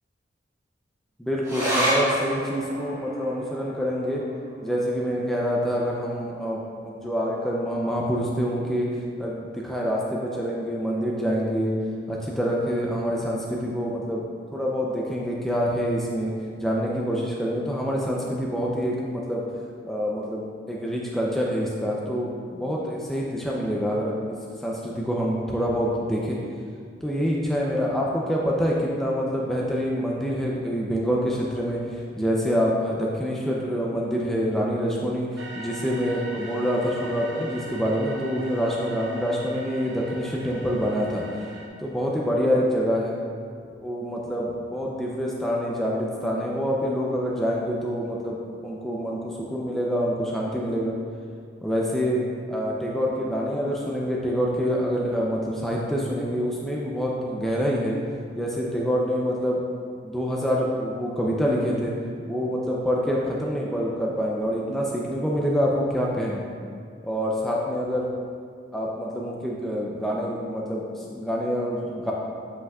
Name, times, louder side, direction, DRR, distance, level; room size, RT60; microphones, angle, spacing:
voice 1, 1.2-4.2 4.6-8.9 9.2-11.7 12.1-14.2 14.5-16.3 16.6-19.4 19.8-26.4 27.0-41.2 41.8-43.1 43.7-48.4 48.6-51.0 51.6-58.0 58.4-59.6 60.0-61.9 62.3-66.5 67.0-68.1 68.7-72.1, equal, ahead, -4 dB, 0.5 m, -26 dB
sound 1, 1.4-8.2 8.5-8.6 9.0-9.6 10.2-10.3, right 1 dB, 15° right, 1.2 m, -32 dB
sound 2, 35.4-41.7, right 2 dB, 60° right, 0.9 m, -41 dB
8.0 x 5.6 x 2.4 m, 2.1 s
head